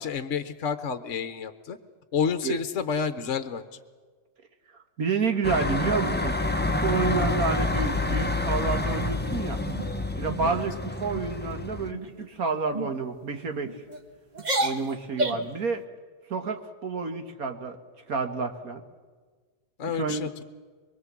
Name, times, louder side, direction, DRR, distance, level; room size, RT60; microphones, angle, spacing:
voice 1, 0.0-1.8 2.1-3.8 10.4-10.6 19.8-20.4, left 6 dB, 50° left, 10 dB, 1.2 m, -30 dB
voice 2, 5.0-6.4 6.7-9.6 10.2-13.7 14.6-15.8 16.3-17.8 18.1-18.8 19.9-20.3, right 4 dB, 60° right, 6 dB, 1.9 m, -29 dB
sound 1, 5.4-11.9, left 2 dB, 10° left, 0.8 m, -28 dB
sound 2, 8.6-9.2 9.6-9.9 10.3-10.5 10.9-11.3 11.9-12.2 12.7-12.9 13.6-14.0 14.3-15.6, right 1 dB, 25° right, 1.5 m, -31 dB
24.0 x 23.0 x 7.5 m, 1.5 s
omnidirectional pair, 1.8 m